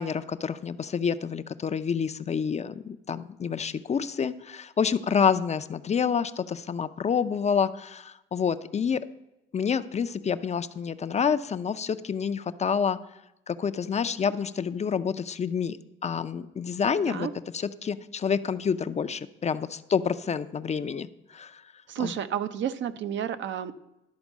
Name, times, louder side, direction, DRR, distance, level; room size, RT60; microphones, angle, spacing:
voice 1, 0.0-9.0 9.5-13.0 13.5-15.8 16.0-17.3 17.5-21.6 22.0-22.1, left 6 dB, 35° left, 12 dB, 0.5 m, -28 dB
voice 2, 21.9-23.7, right 9 dB, 70° right, 11 dB, 0.6 m, -31 dB
11.5 x 4.4 x 7.2 m, 0.89 s
cardioid pair, 90°, 20 cm